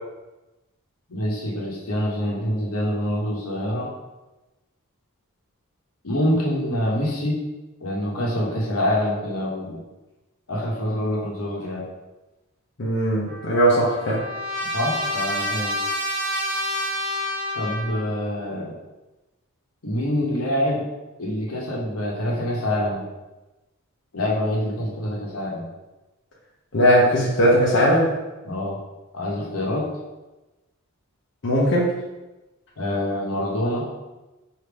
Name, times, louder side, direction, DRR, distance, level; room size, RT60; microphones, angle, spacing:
voice 1, 1.1-3.9 6.0-7.4 7.8-9.8 10.5-11.9 14.6-15.7 17.5-18.8 19.8-20.9 21.2-23.1 24.1-25.6 28.4-28.8 29.1-29.9 32.8-33.9, left 1 dB, 80° left, -3 dB, 1.1 m, -25 dB
voice 2, 12.8-14.2 26.7-28.1 31.4-31.9, equal, 60° left, -5 dB, 0.8 m, -19 dB
Trumpet, 13.3-18.2, left 1 dB, 35° right, 1.3 m, -28 dB
4.9 x 2.8 x 3.4 m, 1.1 s
head